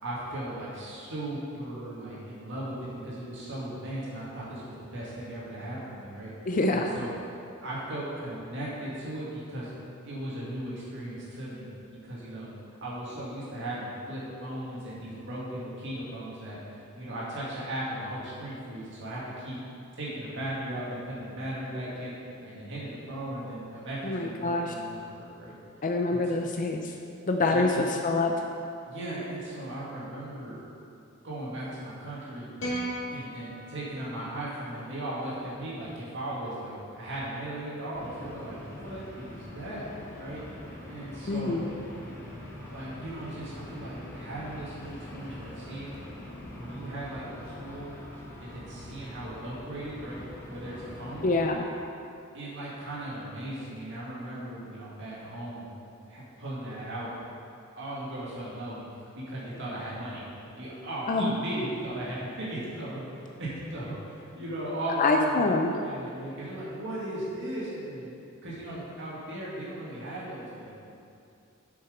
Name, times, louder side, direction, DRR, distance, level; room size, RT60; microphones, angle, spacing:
voice 1, 0.0-6.3 6.7-7.1 7.6-9.7 10.0-11.7 12.0-12.5 12.8-16.6 17.0-19.6 20.0-22.2 22.4-25.5 26.1-26.2 27.5-27.8 28.8-30.6 31.2-32.5 33.1-39.9 40.2-40.4 40.9-41.7 42.7-46.0 46.6-48.0 48.4-51.3 52.3-55.7 56.1-57.1 57.8-58.9 59.1-60.2 60.6-65.5 65.8-68.1 68.4-70.8, right 1 dB, 60° right, -7 dB, 2.0 m, -37 dB
voice 2, 6.5-6.9 24.0-24.7 25.8-26.9 27.3-28.3 41.3-41.6 51.2-51.7 61.1-61.3 65.0-65.7, left 2 dB, 40° left, 2 dB, 0.5 m, -25 dB
sound 1, 32.6-35.0, right 1 dB, 65° left, 1.9 m, -37 dB
sound 2, 37.9-51.5, left 1 dB, 10° left, 1.1 m, -44 dB
7.6 x 5.9 x 5.0 m, 2.6 s
head